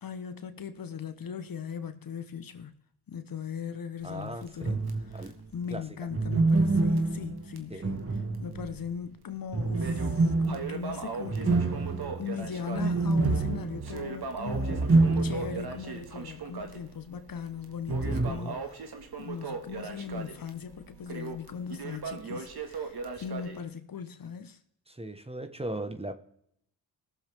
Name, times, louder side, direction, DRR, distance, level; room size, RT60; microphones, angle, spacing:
voice 1, 0.0-2.7 3.1-4.8 5.1-8.0 8.4-11.6 12.2-14.9 15.2-18.8 19.2-24.6, left 7 dB, 50° left, 1.0 m, -39 dB
voice 2, 4.0-4.8 5.1-5.3 5.7-5.8 7.7-8.0 18.0-18.6 24.9-26.1, right 1 dB, 15° right, 1.2 m, -38 dB
Crackle, 4.0-6.7 7.0-7.1 7.6-7.7 8.3-9.0 9.3-23.6, right 4 dB, 60° right, 1.9 m, -39 dB
sound 1, 4.6-5.3 6.1-8.9 9.5-15.7 16.0-16.1 17.9-18.3, right 3 dB, 30° right, 1.7 m, -27 dB
18.5 x 7.1 x 3.5 m
cardioid pair, 60°, 44 cm